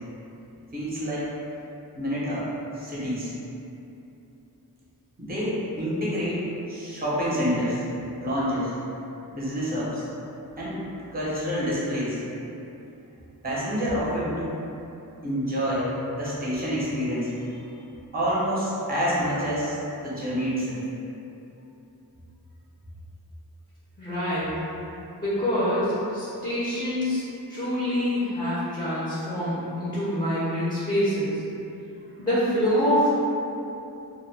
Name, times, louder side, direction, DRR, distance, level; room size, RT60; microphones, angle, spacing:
voice 1, 0.7-1.3 2.0-2.5 2.8-3.3 5.2-7.8 8.2-8.7 9.3-10.1 10.6-10.8 11.1-12.2 13.4-14.5 15.2-17.6 18.1-19.8 20.0-20.8, equal, 25° right, -8 dB, 0.8 m, -27 dB
voice 2, 24.0-24.6 25.2-27.2 27.5-31.4 32.2-33.3, equal, 10° left, -11 dB, 0.6 m, -25 dB
2.2 x 2.1 x 3.3 m, 2.8 s
wide cardioid pair, 50°, 39 cm